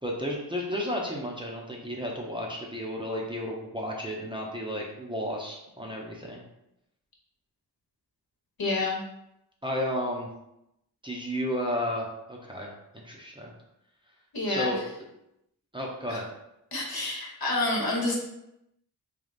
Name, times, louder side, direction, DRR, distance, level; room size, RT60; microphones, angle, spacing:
voice 1, 0.0-6.4 9.6-10.3 11.0-13.5 14.5-14.8 15.7-16.2, equal, 10° right, -2 dB, 0.8 m, -33 dB
voice 2, 8.6-9.0 14.3-14.7 16.1-16.2 16.7-18.2, left 2 dB, 55° left, -2 dB, 1.2 m, -28 dB
3.4 x 2.3 x 4.0 m, 0.85 s
cardioid pair, 40°, 42 cm